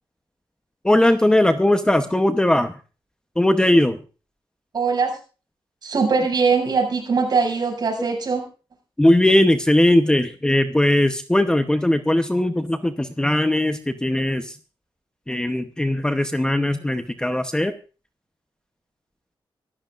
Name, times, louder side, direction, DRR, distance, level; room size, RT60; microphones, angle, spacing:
voice 1, 0.8-2.7 3.4-4.0 9.0-14.6 15.3-17.7, left 1 dB, 10° left, 7 dB, 0.9 m, -19 dB
voice 2, 4.7-5.2 5.8-8.4, right 5 dB, 50° right, 1 dB, 6.9 m, -21 dB
25.5 x 15.0 x 2.5 m, 0.36 s
wide cardioid pair, 150°, 9 cm